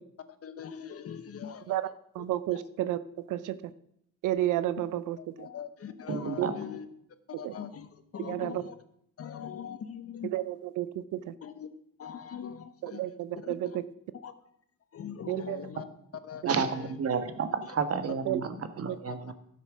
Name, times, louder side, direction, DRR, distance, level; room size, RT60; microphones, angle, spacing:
voice 1, 0.4-1.8 2.5-2.6 5.2-6.9 7.4-8.8 9.2-10.3 11.4-11.7 12.0-13.0 13.4-13.5 14.1-14.3 14.9-15.8 16.2-16.9 17.6-17.7 18.9-19.2, left 8 dB, 50° left, 11 dB, 1.1 m, -42 dB
voice 2, 2.1-3.6 4.2-5.5 6.4-6.5 7.3-7.5 8.2-8.6 10.2-11.3 12.8-13.8 15.3-15.6 18.3-18.4 18.9-19.0, right 13 dB, 85° right, 15 dB, 0.7 m, -31 dB
voice 3, 6.1-6.5 16.4-19.3, right 5 dB, 50° right, 9 dB, 1.4 m, -31 dB
12.0 x 7.4 x 6.1 m, 0.73 s
cardioid pair, 90°, 30 cm